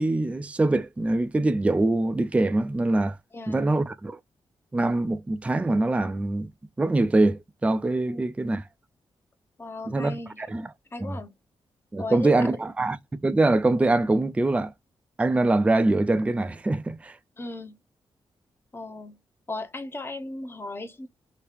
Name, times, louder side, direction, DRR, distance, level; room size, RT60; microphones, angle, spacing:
voice 1, 0.0-3.2 3.5-4.2 4.7-6.5 6.8-8.6 9.9-10.7 11.0-11.2 11.9-14.7 15.2-17.2, right 2 dB, 15° right, 0.4 m, -24 dB
voice 2, 3.3-3.8 8.1-8.3 9.6-10.5 10.9-11.3 12.0-12.5 17.4-17.8 18.7-19.2 19.5-21.1, left 2 dB, 25° left, 0.8 m, -36 dB
3.0 x 2.8 x 3.3 m
cardioid pair, 95°, 10 cm